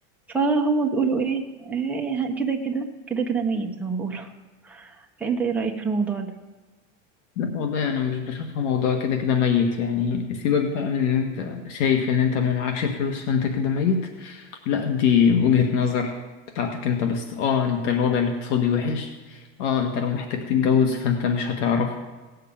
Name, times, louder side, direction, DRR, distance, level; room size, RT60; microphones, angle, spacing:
voice 1, 0.3-4.3 4.6-6.3, right 4 dB, 5° right, 0 dB, 1.2 m, -26 dB
voice 2, 7.4-16.1 16.5-22.0, left 7 dB, 80° left, 4 dB, 1.7 m, -23 dB
17.5 x 6.7 x 8.8 m, 1.3 s
supercardioid pair, 150°, 36 cm